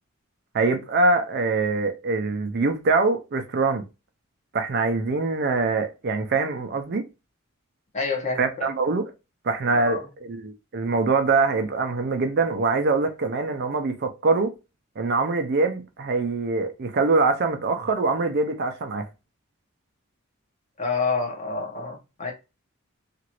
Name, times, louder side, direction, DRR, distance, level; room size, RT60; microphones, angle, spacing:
voice 1, 0.5-3.8 4.5-7.0 8.4-9.0 9.4-14.5 15.0-19.1, right 3 dB, 50° right, 0.5 m, -23 dB
voice 2, 7.9-8.7 9.7-10.1 20.8-22.3, left 4 dB, 35° left, 0.9 m, -28 dB
2.9 x 2.5 x 2.9 m
head